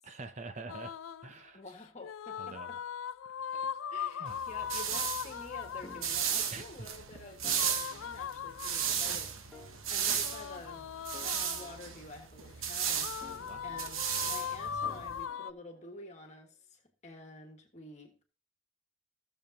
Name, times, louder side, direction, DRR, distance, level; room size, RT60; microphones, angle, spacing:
voice 1, 0.0-0.9 1.2-1.6 2.4-2.7 4.2-4.5 6.5-6.6 13.4-13.6, right 3 dB, 35° right, 9 dB, 0.6 m, -45 dB
sound 1, 0.7-1.3 2.0-6.2 7.5-9.1 10.2-11.9 13.0-15.5, left 8 dB, 80° left, 0.4 m, -39 dB
voice 2, 1.5-2.8 3.5-10.9 11.2-18.2, left 2 dB, 35° left, 3 dB, 1.7 m, -49 dB
sound 2, 4.3-15.3, right 8 dB, 85° right, 1.2 m, -35 dB
sound 3, 5.8-7.0 7.4-8.6 9.5-10.7 11.1-12.5 13.2-14.4 14.8-16.2, left 2 dB, 5° left, 1.9 m, -56 dB
16.0 x 7.0 x 2.8 m, 0.38 s
head